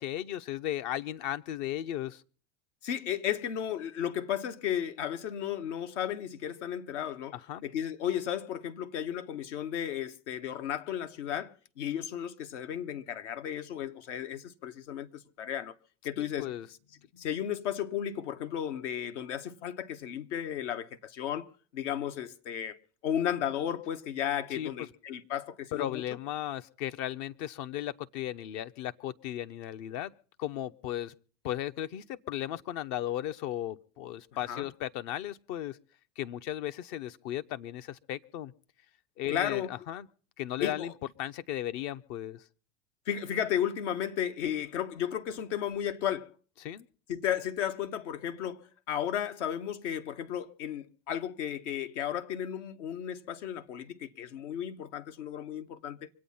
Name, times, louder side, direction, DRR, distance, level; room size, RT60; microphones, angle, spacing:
voice 1, 0.0-2.2 7.3-7.6 16.2-16.7 17.1-17.2 24.5-24.7 25.7-30.1 30.4-31.1 31.4-35.8 36.2-38.5 39.2-40.1 40.4-40.9 41.2-42.4 46.6-46.9, left 12 dB, 55° left, 0.9 m, -36 dB
voice 2, 2.8-7.4 7.6-15.7 16.0-16.5 17.2-22.8 23.0-26.0 34.5-34.7 39.3-39.7 40.6-40.9 43.1-46.3 47.1-56.1, left 10 dB, 70° left, 1.3 m, -34 dB
24.5 x 8.7 x 5.6 m
hypercardioid pair, 90°, 37 cm